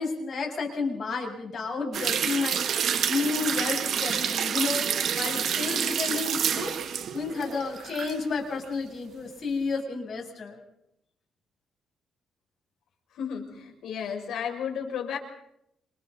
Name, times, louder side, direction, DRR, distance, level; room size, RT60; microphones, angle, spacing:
voice 1, 0.0-2.7 3.1-6.8 7.1-10.6, left 4 dB, 50° left, 1 dB, 7.2 m, -31 dB
sound 1, 1.9-8.2 8.5-8.6, right 8 dB, 60° right, 1.8 m, -28 dB
voice 2, 13.2-15.2, left 7 dB, 85° left, 1 dB, 6.3 m, -33 dB
29.0 x 28.5 x 4.1 m, 0.76 s
cardioid pair, 120°, 0 cm